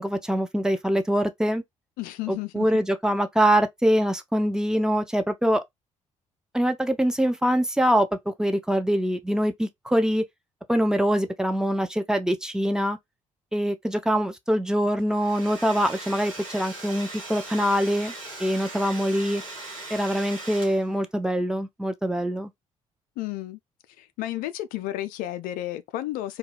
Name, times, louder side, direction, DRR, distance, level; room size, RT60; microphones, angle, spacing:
voice 1, 0.0-1.6 2.3-5.6 6.5-10.2 10.7-13.0 13.5-18.1 18.4-19.4 19.9-22.5, equal, 5° right, 0.5 m, -24 dB
voice 2, 2.0-2.7 23.2-23.6 24.0-26.4, left 14 dB, 60° left, 0.4 m, -32 dB
Domestic sounds home sounds, 15.0-21.0, right 2 dB, 80° right, 0.8 m, -39 dB
2.2 x 2.2 x 3.3 m
figure-of-eight pair, 45°, 17 cm